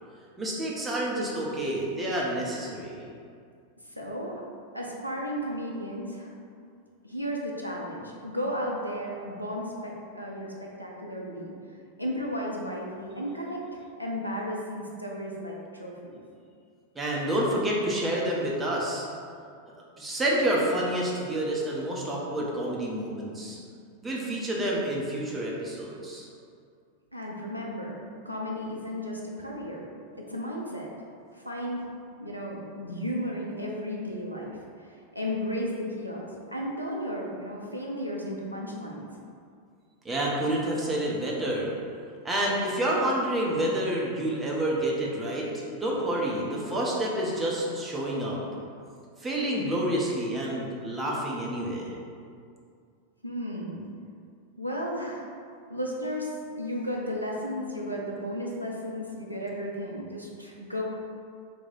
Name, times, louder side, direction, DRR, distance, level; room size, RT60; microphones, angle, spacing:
voice 1, 0.4-3.0 16.9-19.0 20.0-23.6 24.0-26.3 40.0-41.7 42.2-45.5 45.7-48.4 49.2-52.0, right 1 dB, 15° right, -4 dB, 0.7 m, -28 dB
voice 2, 4.0-4.4 4.7-6.3 7.0-11.5 12.0-16.2 27.1-28.0 28.2-29.8 30.1-30.9 31.4-31.9 32.2-34.6 35.1-39.1 53.2-53.8 54.6-55.3 55.7-60.8, equal, 90° right, -2 dB, 0.4 m, -34 dB
3.1 x 2.7 x 3.8 m, 2.3 s
figure-of-eight pair, 90°, 0 cm